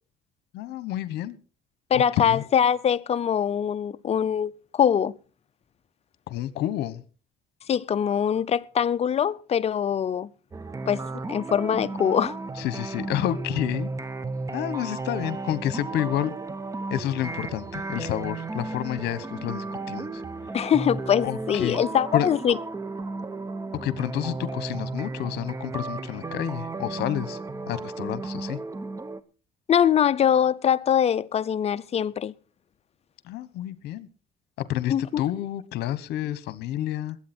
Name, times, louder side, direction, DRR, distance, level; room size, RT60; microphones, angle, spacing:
voice 1, 0.5-1.3 1.9-2.4 6.3-7.0 12.6-13.9 14.5-16.4 16.9-20.2 21.2-21.8 22.1-22.3 23.8-27.4 27.7-28.6 33.2-34.1 34.6-37.2, left 12 dB, 80° left, 1.2 m, -29 dB
voice 2, 1.9-5.1 7.7-10.3 10.9-11.0 11.3-12.4 20.5-22.6 29.7-32.3 34.9-35.2, left 8 dB, 40° left, 0.6 m, -23 dB
sound 1, 10.5-29.2, right 3 dB, 20° right, 0.9 m, -34 dB
21.0 x 8.6 x 4.4 m
cardioid pair, 110°, 17 cm